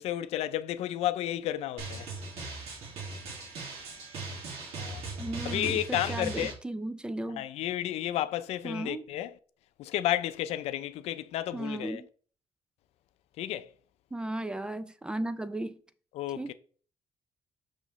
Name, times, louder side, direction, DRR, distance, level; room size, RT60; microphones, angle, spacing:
voice 1, 0.0-2.1 4.7-5.0 5.4-6.5 7.3-9.3 9.8-12.0 13.4-13.7 16.1-16.5, left 13 dB, 90° left, 0.5 m, -32 dB
Drum, 1.8-6.5, right 3 dB, 75° right, 2.2 m, -39 dB
voice 2, 5.2-7.5 8.6-9.1 11.5-12.1 14.1-15.8 16.3-16.5, right 1 dB, 10° right, 0.4 m, -35 dB
6.2 x 6.0 x 3.1 m
cardioid pair, 140°, 10 cm